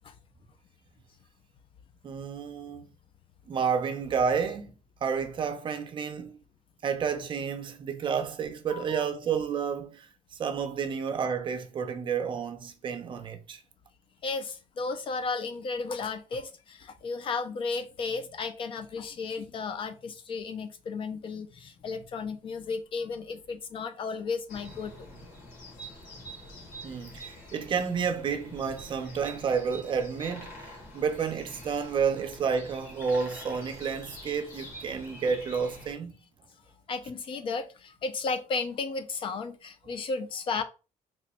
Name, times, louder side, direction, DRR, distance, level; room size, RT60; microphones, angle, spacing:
voice 1, 2.0-2.9 3.5-4.8 5.0-6.4 6.8-13.6 26.8-36.1, right 6 dB, 35° right, 0.5 m, -30 dB
voice 2, 8.7-9.0 14.2-24.9 36.9-40.6, left 4 dB, 40° left, 0.4 m, -34 dB
sound 1, 24.5-35.9, equal, 80° left, 1.4 m, -46 dB
3.0 x 2.1 x 4.1 m
cardioid pair, 145°, 14 cm